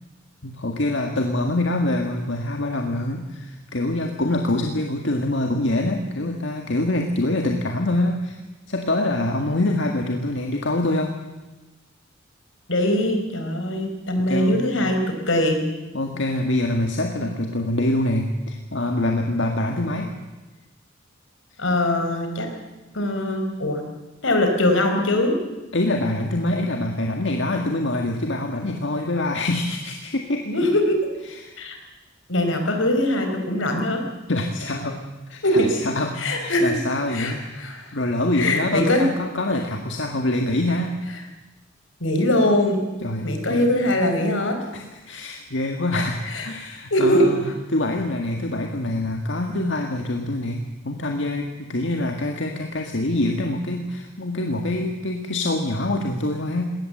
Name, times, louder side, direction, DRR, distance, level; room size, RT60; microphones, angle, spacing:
voice 1, 0.4-8.4 8.7-11.1 14.2-14.6 15.9-20.1 25.7-30.5 31.3-31.6 34.3-37.6 37.9-41.0 43.0-43.7 44.7-50.6 50.8-56.7, left 1 dB, 65° left, 3 dB, 1.8 m, -25 dB
voice 2, 12.7-15.7 21.6-22.5 22.9-23.8 24.2-25.4 30.4-31.0 31.6-31.8 32.3-34.0 35.4-35.7 36.2-36.8 37.1-37.9 38.3-39.0 42.0-42.8 43.2-44.6 46.3-46.5 46.9-47.3, left 1 dB, 85° left, 4 dB, 4.6 m, -21 dB
21.0 x 18.0 x 7.8 m, 1.1 s
head